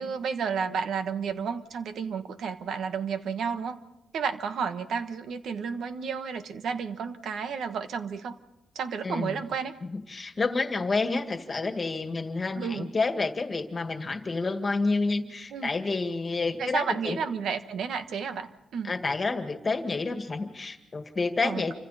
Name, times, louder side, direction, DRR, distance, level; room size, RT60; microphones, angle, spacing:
voice 1, 0.0-3.8 4.1-8.4 8.7-9.8 12.5-12.9 15.5-15.7 16.6-18.9 21.4-21.7, right 6 dB, 75° right, 9 dB, 1.3 m, -32 dB
voice 2, 9.9-17.2 18.8-21.7, left 3 dB, 30° left, 6 dB, 1.9 m, -29 dB
28.5 x 25.5 x 4.3 m, 0.95 s
cardioid pair, 130°, 0 cm